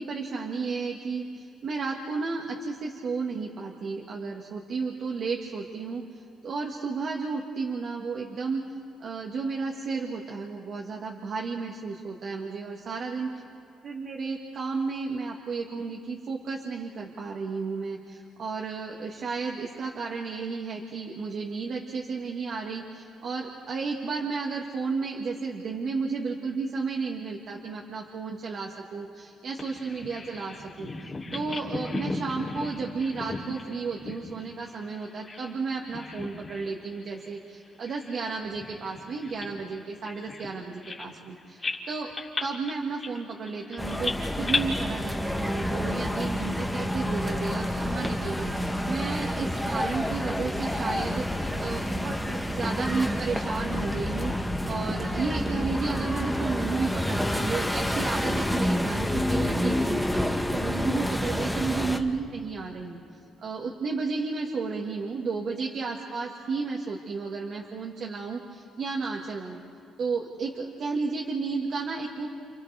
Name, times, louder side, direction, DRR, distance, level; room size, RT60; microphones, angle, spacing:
voice 1, 0.0-8.6 9.0-13.3 13.8-42.1 42.4-54.3 54.7-69.6 70.0-72.3, right 4 dB, 60° right, -1 dB, 1.8 m, -33 dB
Bird vocalization bird call bird song, 29.6-35.6 35.8-36.7 37.1-37.3 37.9-41.3 41.6-44.6, left 3 dB, 30° left, 3.1 m, -36 dB
sound 1, 43.8-62.0, left 1 dB, ahead, 1.4 m, -28 dB
29.5 x 29.5 x 3.5 m, 2.5 s
cardioid pair, 90°, 0 cm